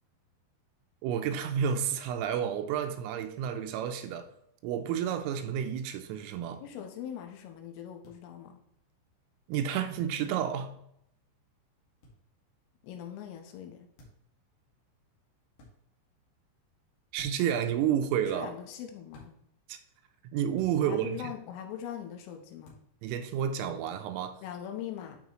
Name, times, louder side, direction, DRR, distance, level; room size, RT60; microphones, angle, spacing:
voice 1, 1.0-4.3 4.6-6.6 9.5-10.8 17.1-18.5 19.7-19.8 20.2-21.2 23.0-24.4, right 9 dB, 85° right, 3.3 m, -30 dB
voice 2, 6.6-8.6 12.8-13.9 18.3-19.4 20.8-22.8 24.4-25.2, left 9 dB, 80° left, 3.5 m, -41 dB
sound 1, 8.0-8.2 9.9-10.1 12.0-12.2 14.0-14.3 15.5-15.7 17.1-17.6 19.1-19.3 20.5-20.8 22.6-22.9, left 1 dB, 55° left, 3.0 m, -52 dB
12.0 x 4.8 x 3.0 m
omnidirectional pair, 6.0 m